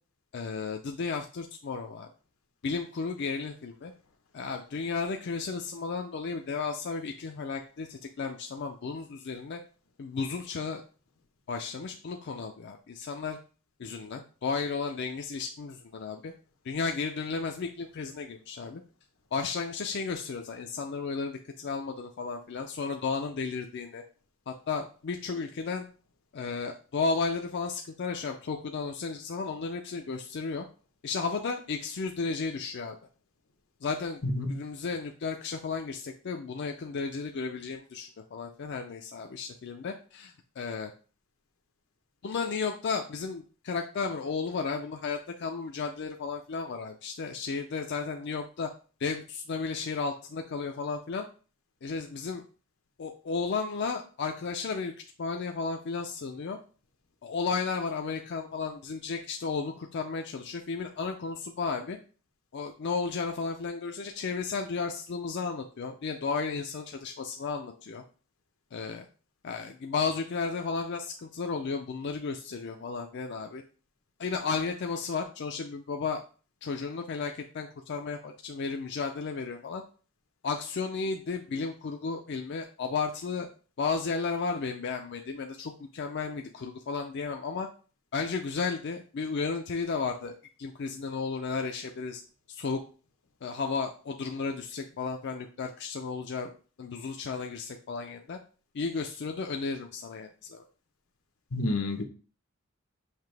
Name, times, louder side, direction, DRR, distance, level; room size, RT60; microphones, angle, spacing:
voice 1, 0.3-2.1 2.6-3.9 4.3-9.6 10.0-10.8 11.5-13.4 13.8-16.3 16.6-18.8 19.3-24.0 24.5-25.9 26.3-30.7 31.0-33.0 33.8-34.2 34.5-40.9 42.2-48.7 49.0-51.3 51.8-52.4 53.0-54.9 55.2-56.6 57.2-62.0 62.5-68.0 68.7-69.1 69.4-73.6 74.2-76.2 76.6-79.8 80.4-83.5 83.8-87.7 88.1-92.2 92.5-92.8 93.4-96.5 96.8-98.4 98.7-100.6, left 4 dB, 55° left, 3 dB, 0.4 m, -33 dB
voice 2, 34.2-34.5 101.5-102.0, left 2 dB, 85° left, 4 dB, 0.9 m, -29 dB
5.8 x 2.8 x 3.3 m, 0.38 s
head